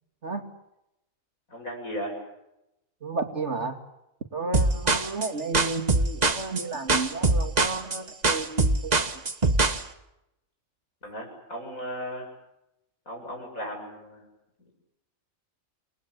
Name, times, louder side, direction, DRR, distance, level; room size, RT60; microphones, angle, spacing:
voice 1, 1.5-2.2 11.0-12.3 13.1-14.2, equal, 80° left, 3 dB, 8.4 m, -36 dB
voice 2, 3.0-3.8 4.3-9.0, right 3 dB, 55° right, 5 dB, 2.7 m, -32 dB
sound 1, 4.5-9.8, right 3 dB, 30° right, 1.4 m, -23 dB
28.5 x 20.5 x 8.2 m, 0.88 s
omnidirectional pair, 1.4 m